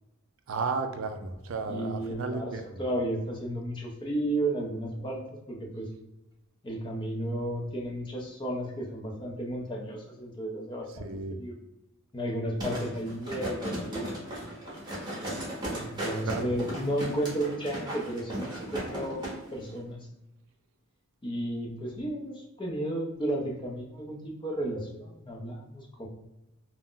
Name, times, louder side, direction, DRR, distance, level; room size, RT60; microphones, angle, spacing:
voice 1, 0.5-2.7 11.0-11.4 16.2-16.5, right 4 dB, 65° right, 7 dB, 0.3 m, -33 dB
voice 2, 1.7-5.2 5.5-5.9 6.6-11.1 11.4-11.6 12.1-14.1 15.7-20.0 21.2-26.1, right 1 dB, 20° left, 0 dB, 0.5 m, -33 dB
sound 1, 12.6-19.3 19.7-19.8, right 1 dB, 20° right, 0.8 m, -36 dB
2.4 x 2.0 x 3.6 m, 0.95 s
head